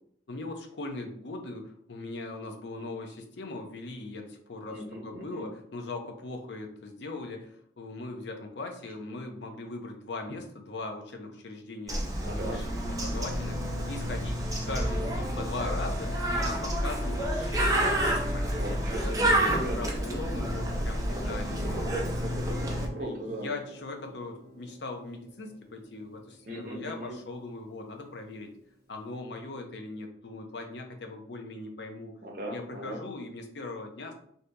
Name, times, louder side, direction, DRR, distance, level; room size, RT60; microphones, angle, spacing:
voice 1, 0.3-13.6 13.9-18.6 19.0-21.8 23.0-23.1 23.4-28.6 28.9-32.2 32.5-34.1, left 2 dB, 70° left, 3 dB, 0.6 m, -40 dB
voice 2, 4.6-5.5 12.2-12.6 18.6-19.8 21.0-21.4 21.7-23.5 26.4-27.2 32.2-33.0, right 1 dB, 50° right, 0 dB, 0.8 m, -38 dB
Bird, 11.9-22.9, right 1 dB, 20° right, 0.5 m, -29 dB
Guitar, 21.4-28.5, right 1 dB, 20° left, 1.3 m, -48 dB
2.7 x 2.7 x 3.3 m, 0.66 s
head